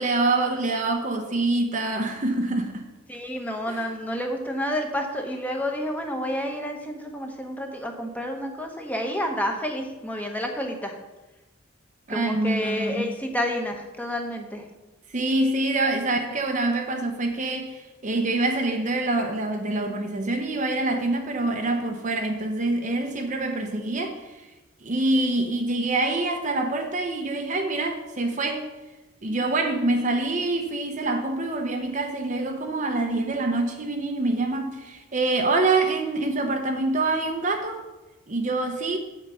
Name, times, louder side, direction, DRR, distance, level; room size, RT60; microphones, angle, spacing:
voice 1, 0.0-2.9 3.7-3.9 12.1-13.1 15.1-24.5 24.8-28.6 29.2-37.9 38.3-39.0, right 2 dB, 40° right, 0.8 m, -25 dB
voice 2, 3.1-11.0 12.1-14.6, equal, 10° left, 1.0 m, -29 dB
8.3 x 6.0 x 5.6 m
head